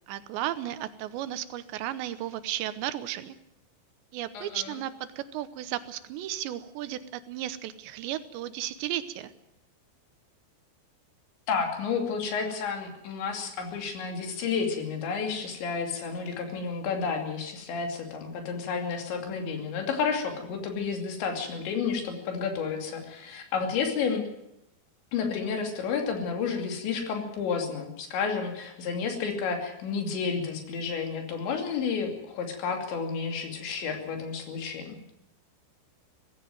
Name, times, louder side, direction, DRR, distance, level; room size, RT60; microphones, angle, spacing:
voice 1, 0.1-3.4 4.1-9.3, right 12 dB, 80° right, 13 dB, 3.1 m, -34 dB
voice 2, 4.3-4.8 11.5-24.3 25.1-35.0, left 5 dB, 75° left, 3 dB, 4.9 m, -31 dB
18.0 x 16.0 x 9.2 m, 0.82 s
omnidirectional pair, 5.2 m